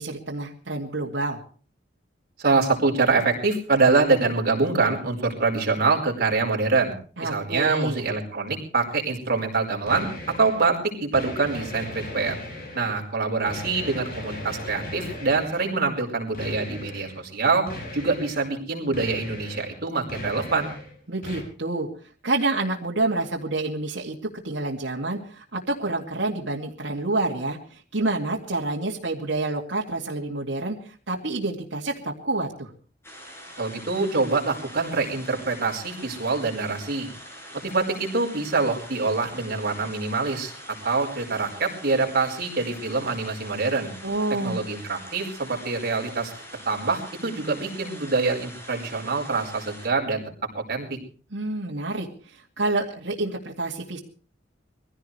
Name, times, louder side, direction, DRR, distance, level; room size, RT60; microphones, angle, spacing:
voice 1, 0.0-1.4 7.2-8.0 21.1-21.9 22.2-24.1 24.4-32.7 44.0-44.6 51.3-54.0, right 2 dB, 80° right, -2 dB, 2.4 m, -28 dB
voice 2, 2.4-6.9 7.2-12.4 12.7-17.7 17.9-20.7 33.6-37.1 37.6-40.5 40.8-43.9 44.4-46.3 46.6-50.3 50.5-51.0, right 4 dB, 55° right, 2 dB, 4.9 m, -25 dB
sound 1, 9.9-10.7 11.1-13.0 13.5-15.8 16.3-17.2 17.7-18.5 18.9-19.8 20.1-20.9 21.2-21.4, left 1 dB, 50° left, 6.6 m, -37 dB
sound 2, 33.0-49.9, equal, 15° left, 4.9 m, -44 dB
23.5 x 16.0 x 3.3 m, 0.40 s
head